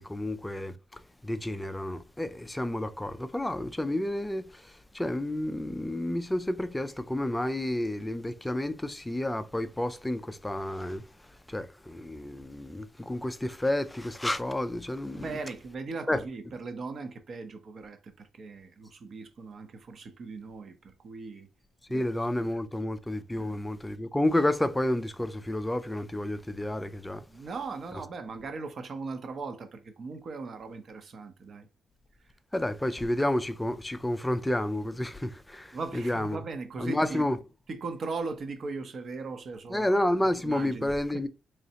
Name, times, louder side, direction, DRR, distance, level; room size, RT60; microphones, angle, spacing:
voice 1, 0.0-11.0 11.5-15.3 16.1-16.2 21.9-27.2 32.5-36.4 36.8-37.4 39.7-41.3, left 1 dB, 10° left, 0.4 m, -30 dB
voice 2, 15.2-21.5 21.9-22.1 23.4-23.6 27.3-31.7 32.2-32.3 35.7-37.3 37.7-39.9 40.4-41.3, right 4 dB, 45° right, 0.7 m, -39 dB
4.1 x 3.1 x 2.8 m
cardioid pair, 140°, 0 cm